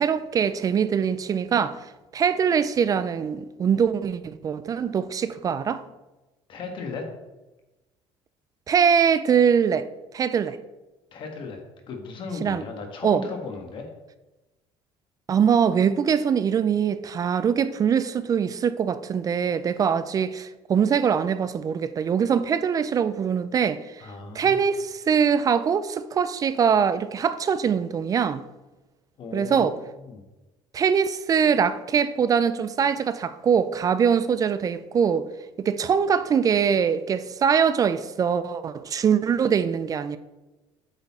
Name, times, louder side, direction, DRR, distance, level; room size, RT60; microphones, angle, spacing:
voice 1, 0.0-1.8 2.1-5.8 8.7-9.9 10.1-10.6 12.4-12.6 13.0-13.2 15.3-24.0 24.4-28.4 29.3-29.7 30.7-35.3 35.6-40.2, right 7 dB, 35° right, 0.4 m, -23 dB
voice 2, 6.5-7.1 11.1-11.6 11.9-13.9 24.0-24.6 29.2-29.7 30.0-30.2, left 4 dB, 50° left, 1.4 m, -36 dB
8.0 x 4.0 x 4.2 m
cardioid pair, 110°, 11 cm